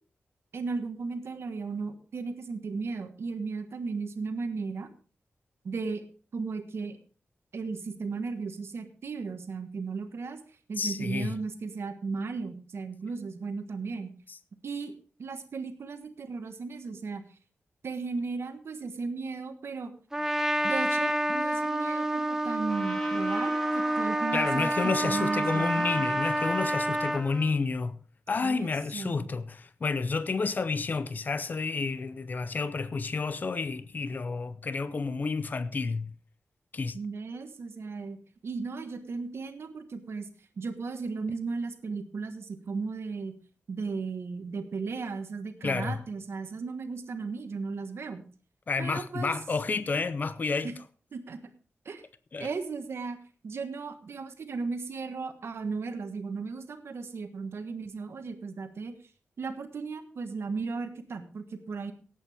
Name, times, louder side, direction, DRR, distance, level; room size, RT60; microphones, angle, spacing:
voice 1, 0.5-4.9 5.6-6.0 6.3-7.0 7.5-10.4 10.7-14.1 14.6-14.9 15.2-17.2 17.8-19.9 20.6-26.1 28.4-29.3 36.9-38.2 38.4-40.3 40.6-43.3 43.7-48.2 48.8-49.3 50.6-50.7 51.1-51.4 51.8-52.0 52.4-53.2 53.4-58.9 59.4-61.9, right 4 dB, 65° right, 1.4 m, -35 dB
voice 2, 10.8-11.3 14.3-14.4 24.3-28.0 28.3-36.1 36.7-37.0 45.6-46.0 48.7-50.7 52.3-52.5, left 4 dB, 40° left, 0.6 m, -30 dB
Trumpet, 20.1-27.2, right 1 dB, 10° right, 0.8 m, -28 dB
Trumpet 2, 22.7-27.6, equal, 15° left, 1.8 m, -41 dB
18.0 x 8.4 x 3.5 m
wide cardioid pair, 165°, 5 cm